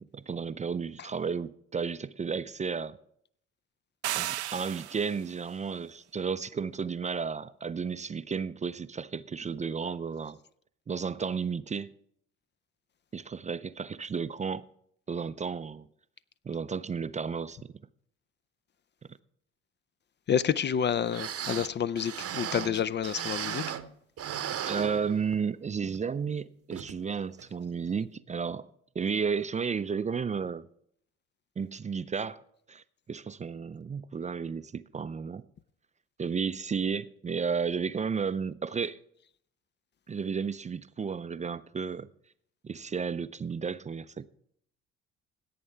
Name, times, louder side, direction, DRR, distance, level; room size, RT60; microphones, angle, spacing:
voice 1, 0.0-3.0 4.1-10.4 10.9-11.9 13.1-14.7 15.1-15.9 16.4-17.8 24.6-28.7 28.9-30.7 31.6-32.4 32.7-32.8 33.1-35.4 36.2-39.0 40.1-42.1 42.6-44.3, right 6 dB, 20° right, 0.5 m, -33 dB
sound 1, 4.0-5.3, right 14 dB, 90° right, 0.5 m, -34 dB
voice 2, 20.3-23.6, left 8 dB, 35° left, 0.4 m, -29 dB
sound 2, 20.8-20.9 21.1-23.9 24.2-25.5 25.9-26.0 26.7-26.9 27.4-27.5, right 9 dB, 45° right, 0.9 m, -36 dB
17.0 x 8.5 x 3.4 m
hypercardioid pair, 50°, 32 cm